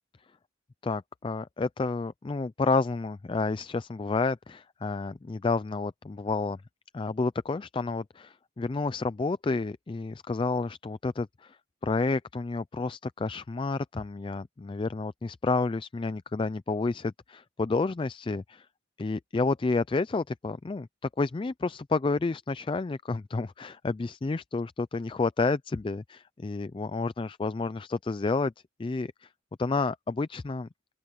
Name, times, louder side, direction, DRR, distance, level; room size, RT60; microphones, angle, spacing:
voice 1, 0.8-6.6 6.9-18.7 19.0-20.9 21.2-28.5 28.8-29.3 29.6-30.7, left 3 dB, 25° left, 0.3 m, -30 dB
open air
head